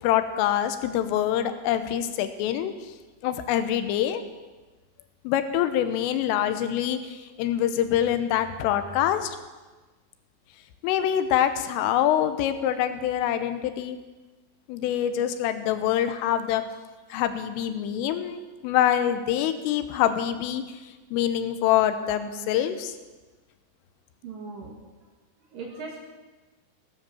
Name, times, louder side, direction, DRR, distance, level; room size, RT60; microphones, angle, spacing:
voice 1, 0.0-2.7 3.2-4.2 5.2-9.4 10.8-14.0 14.7-16.6 17.1-20.6 21.1-22.9, left 11 dB, 90° left, 10 dB, 3.5 m, -25 dB
voice 2, 24.2-24.7 25.5-26.0, right 4 dB, 55° right, 0 dB, 2.8 m, -38 dB
17.5 x 10.0 x 7.0 m, 1.2 s
omnidirectional pair, 5.8 m